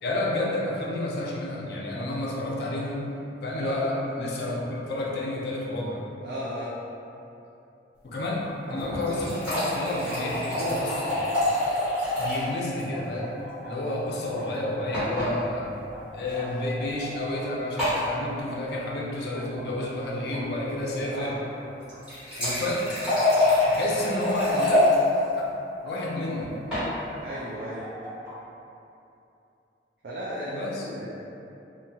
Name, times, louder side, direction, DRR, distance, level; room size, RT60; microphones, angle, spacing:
voice 1, 0.0-3.0 3.4-6.1 8.0-11.3 12.2-13.3 13.6-15.7 16.1-21.3 22.4-22.9 23.7-24.8 25.4-25.5 25.8-26.5 30.5-30.9, left 1 dB, 65° left, -3 dB, 0.4 m, -30 dB
voice 2, 6.2-6.7 21.1-21.3 27.2-27.9 30.0-31.1, right 1 dB, 65° right, -7 dB, 0.4 m, -35 dB
sound 1, 8.7-10.3 10.6-12.5 12.9-15.1 15.9-17.1 17.3-17.4 17.8-18.8 19.3-20.4 21.0-22.0 22.7-23.7 23.9-25.2 25.8-26.8 27.3-28.3, equal, 20° right, 0.8 m, -41 dB
sound 2, 8.8-12.5 12.8-12.9 13.1-13.2 14.9-15.3 16.3-16.4 17.8-18.1 21.8-24.9 26.4-26.9, left 1 dB, 5° right, 1.1 m, -25 dB
2.8 x 2.2 x 2.7 m, 2.8 s
head